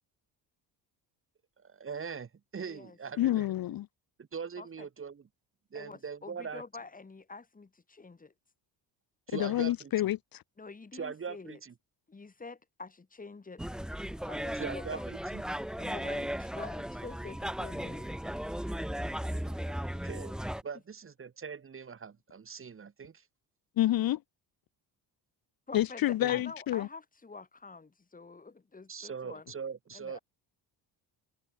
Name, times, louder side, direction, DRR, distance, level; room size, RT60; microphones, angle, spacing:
voice 1, 1.6-3.5 4.2-5.3 5.7-6.6 9.3-9.9 10.9-11.7 14.5-15.4 19.5-19.6 20.0-23.3 26.2-26.4 28.9-30.2, right 6 dB, 30° right, 2.4 m, -41 dB
voice 2, 2.6-3.0 4.6-4.9 5.7-8.3 10.6-11.6 12.1-13.6 14.3-15.0 15.8-18.2 25.7-29.4 29.9-30.2, left 4 dB, 20° left, 4.5 m, -47 dB
voice 3, 3.2-3.9 9.3-10.4 23.8-24.2 25.7-26.9, left 14 dB, 55° left, 1.0 m, -28 dB
sound 1, 13.6-20.6, equal, ahead, 1.7 m, -36 dB
cardioid pair, 130°, 41 cm